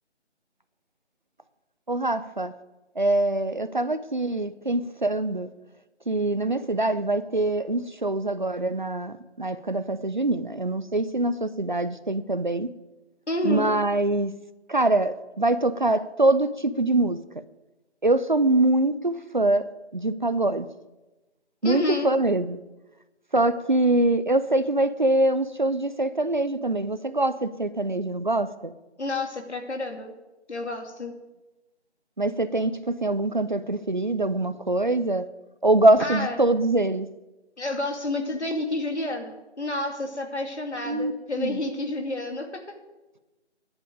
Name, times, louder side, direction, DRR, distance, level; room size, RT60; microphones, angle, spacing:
voice 1, 1.9-2.5 3.0-5.5 6.1-12.7 13.4-14.3 14.7-17.2 18.0-19.7 19.9-20.7 21.6-22.6 23.3-28.7 32.2-35.3 35.6-37.1 40.9-41.1 41.4-41.6, right 2 dB, 45° right, 14 dB, 0.6 m, -24 dB
voice 2, 13.3-13.7 21.6-22.1 29.0-30.1 30.5-31.1 36.0-36.4 37.6-42.6, left 2 dB, 75° left, 3 dB, 2.6 m, -30 dB
13.5 x 10.5 x 5.3 m, 1.1 s
figure-of-eight pair, 165°, 35 cm